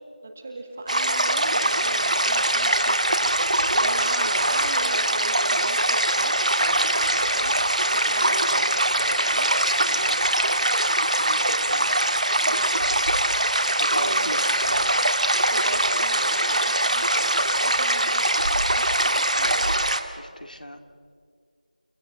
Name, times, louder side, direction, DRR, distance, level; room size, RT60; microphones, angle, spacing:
voice 1, 0.2-9.5 12.4-12.7 13.9-19.7, right 2 dB, 10° right, 4 dB, 0.7 m, -37 dB
sound 1, 0.9-20.0, right 1 dB, 55° right, 1.8 m, -22 dB
voice 2, 9.9-10.2 11.1-11.9 13.8-14.4 20.2-20.8, left 1 dB, 70° left, 7 dB, 2.3 m, -38 dB
30.0 x 16.0 x 7.4 m, 2.2 s
figure-of-eight pair, 175°, 5 cm